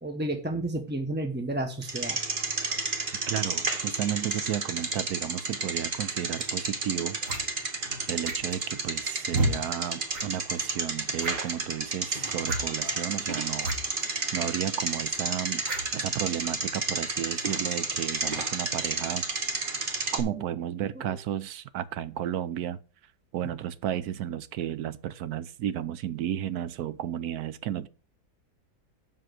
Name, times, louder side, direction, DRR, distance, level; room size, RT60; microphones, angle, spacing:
voice 1, 0.0-2.2 21.0-21.1, right 1 dB, 10° right, 0.6 m, -31 dB
Bicycle, 1.8-20.2, right 3 dB, 35° right, 1.4 m, -31 dB
voice 2, 3.3-7.2 8.1-15.6 15.9-19.2 20.1-22.8 23.3-27.9, right 11 dB, 70° right, 1.1 m, -33 dB
sound 1, 6.4-6.5 7.2-7.4 8.2-8.6 9.3-9.5 10.1-10.3 10.5-10.6 11.2-11.5 12.4-12.6 13.6-13.7 14.0-14.1 15.6-15.9, right 1 dB, 55° right, 2.2 m, -29 dB
7.6 x 5.9 x 6.2 m
omnidirectional pair, 1.7 m